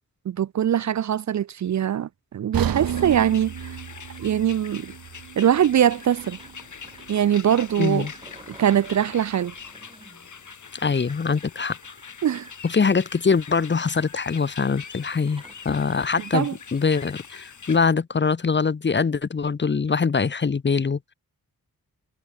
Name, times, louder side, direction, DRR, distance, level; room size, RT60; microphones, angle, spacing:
voice 1, 0.3-3.5 4.2-4.9 5.4-6.4 7.1-8.1 8.6-9.5 12.2-12.5 16.3-16.6, right 10 dB, 55° right, 0.4 m, -22 dB
sound 1, 2.5-6.6 6.9-7.1 7.7-7.8, right 9 dB, 80° right, 1.1 m, -32 dB
sound 2, 2.8-17.8, left 6 dB, 55° left, 2.5 m, -43 dB
sound 3, 5.9-17.0, right 2 dB, 15° right, 5.7 m, -51 dB
voice 2, 7.8-8.1 10.8-11.8 12.6-21.1, left 5 dB, 30° left, 0.8 m, -23 dB
wide cardioid pair, 130°, 35 cm